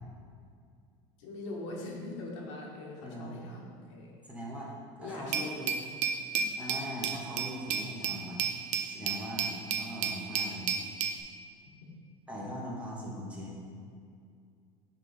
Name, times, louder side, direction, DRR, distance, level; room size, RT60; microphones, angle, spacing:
voice 1, 1.2-4.2 5.0-5.7 6.3-6.4, left 2 dB, 85° left, -2 dB, 1.3 m, -42 dB
voice 2, 3.0-3.4 4.3-4.7 5.0-5.7 6.6-8.4 8.9-10.8 12.3-13.6, equal, 10° right, -5 dB, 1.3 m, -40 dB
Glass, 5.3-11.2, right 6 dB, 50° right, 0.6 m, -33 dB
6.0 x 3.7 x 5.4 m, 2.3 s
supercardioid pair, 120°, 15 cm